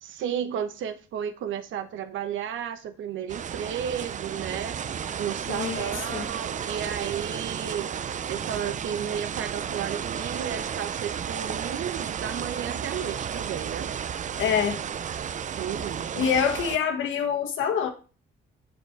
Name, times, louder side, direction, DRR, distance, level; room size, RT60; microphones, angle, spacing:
voice 1, 0.0-4.8 5.2-8.0 8.3-13.9 15.6-16.3, right 9 dB, 80° right, 0.9 m, -33 dB
sound 1, 3.3-16.8, right 8 dB, 40° right, 0.4 m, -33 dB
voice 2, 5.5-6.3 14.4-14.8 16.2-17.9, left 7 dB, 80° left, 1.4 m, -26 dB
7.3 x 4.5 x 4.6 m
cardioid pair, 90°, 20 cm